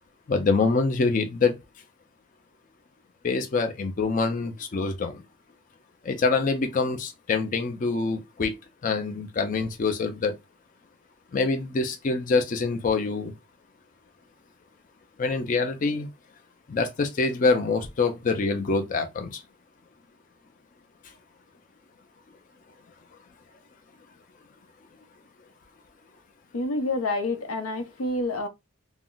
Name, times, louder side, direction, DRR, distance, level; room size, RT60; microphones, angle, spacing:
voice 1, 0.3-1.5 3.2-5.1 6.1-8.5 8.8-10.3 11.3-13.3 15.2-16.1 16.7-19.3, left 4 dB, 40° left, 0.4 m, -25 dB
voice 2, 26.5-28.5, left 2 dB, 85° left, 0.6 m, -28 dB
2.4 x 2.0 x 3.7 m
head